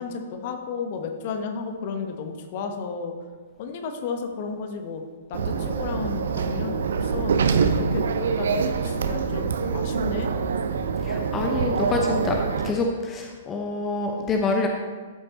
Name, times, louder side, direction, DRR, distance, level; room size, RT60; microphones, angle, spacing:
voice 1, 0.0-3.1 3.6-5.0 5.3-10.3, left 5 dB, 45° left, 5 dB, 1.1 m, -33 dB
sound 1, 5.3-12.7, right 5 dB, 60° right, 0.6 m, -25 dB
voice 2, 11.0-14.7, left 3 dB, 20° left, 2 dB, 0.8 m, -26 dB
13.5 x 7.8 x 3.0 m, 1.5 s
figure-of-eight pair, 110°, 0 cm